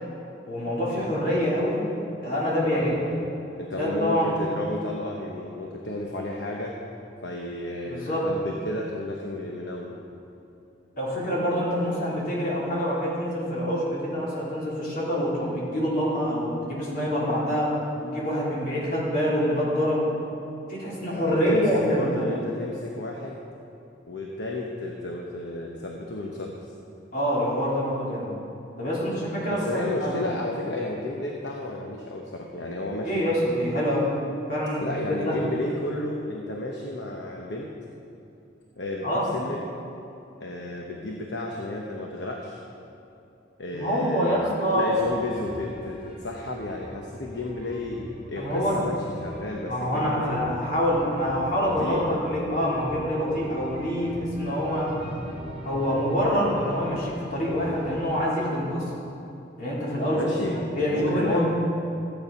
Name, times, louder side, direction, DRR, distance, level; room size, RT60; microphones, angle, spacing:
voice 1, 0.5-1.9 2.2-3.0 3.7-4.4 7.9-8.3 11.0-20.1 20.7-22.4 27.1-28.3 28.8-30.2 33.0-34.1 34.5-35.4 39.0-39.3 43.7-45.0 48.4-48.8 49.7-54.9 55.6-58.9 59.6-61.4, equal, 45° left, -6 dB, 3.4 m, -26 dB
voice 2, 2.7-3.2 3.6-6.7 7.2-10.0 21.3-23.4 24.1-26.6 29.5-33.2 34.8-37.7 38.8-39.8 40.4-42.6 43.6-50.3 51.6-52.2 60.1-61.4, left 1 dB, 65° left, -1 dB, 1.0 m, -32 dB
sound 1, 44.9-58.2, equal, 30° right, 2.1 m, -42 dB
14.0 x 8.8 x 5.3 m, 2.7 s
head